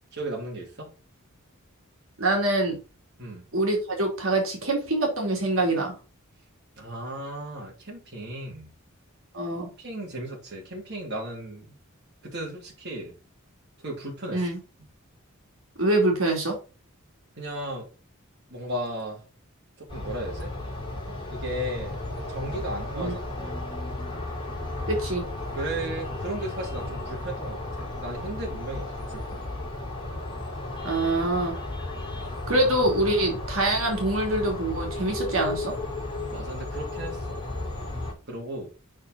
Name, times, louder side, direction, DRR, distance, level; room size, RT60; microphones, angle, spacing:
voice 1, 0.1-0.9 3.2-3.5 6.8-8.7 9.8-11.7 12.2-13.2 13.8-14.5 17.4-17.9 18.5-19.2 19.8-20.5 21.3-22.0 22.3-23.7 25.5-29.5 32.5-32.6 36.3-37.4 38.3-38.7, right 1 dB, 55° right, -2 dB, 2.8 m, -35 dB
voice 2, 2.2-2.8 3.5-6.0 9.3-9.7 14.3-14.6 15.8-16.6 23.0-23.1 24.9-25.2 30.8-31.6 32.5-35.8, right 1 dB, 70° right, 0 dB, 2.8 m, -25 dB
sound 1, 19.9-38.1, left 2 dB, 25° left, 3.9 m, -34 dB
6.5 x 6.1 x 4.0 m, 0.31 s
head